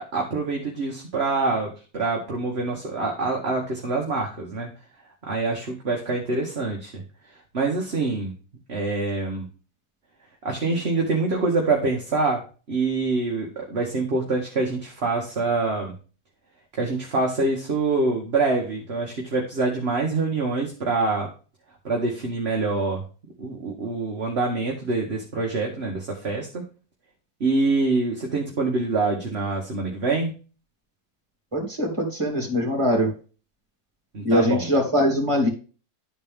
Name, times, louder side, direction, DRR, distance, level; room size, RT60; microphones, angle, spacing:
voice 1, 0.0-4.7 5.3-7.0 7.5-8.3 8.7-9.5 10.4-12.4 12.7-15.9 16.7-21.3 21.8-23.0 23.4-26.6 27.4-30.3 34.1-34.7, right 3 dB, 40° right, 0 dB, 1.5 m, -25 dB
voice 2, 31.5-33.1 34.2-35.5, equal, 20° right, 0 dB, 2.6 m, -22 dB
11.5 x 4.2 x 3.5 m, 0.35 s
omnidirectional pair, 1.7 m